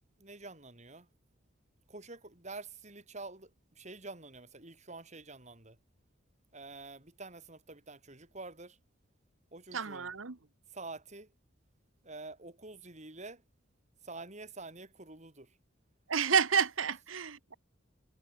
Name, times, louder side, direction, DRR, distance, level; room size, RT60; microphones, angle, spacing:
voice 1, 0.2-1.1 1.9-5.8 6.5-8.8 9.5-10.1 10.7-11.3 12.0-13.4 14.0-15.6, right 3 dB, 35° right, 5.1 m, -47 dB
voice 2, 9.7-10.4 16.1-17.5, right 6 dB, 85° right, 1.3 m, -30 dB
head